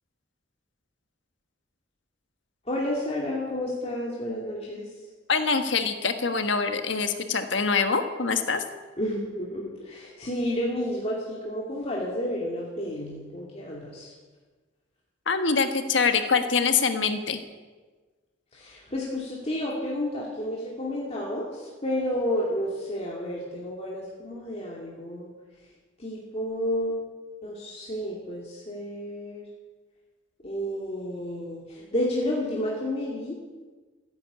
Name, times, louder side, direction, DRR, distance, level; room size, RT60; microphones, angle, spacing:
voice 1, 2.7-4.9 9.0-14.1 18.5-25.3 26.0-27.0 27.4-29.4 30.4-33.4, left 1 dB, 35° left, -4 dB, 2.7 m, -31 dB
voice 2, 5.3-8.6 15.3-17.4, left 5 dB, 70° left, 8 dB, 1.5 m, -24 dB
15.5 x 10.5 x 8.4 m, 1.3 s
head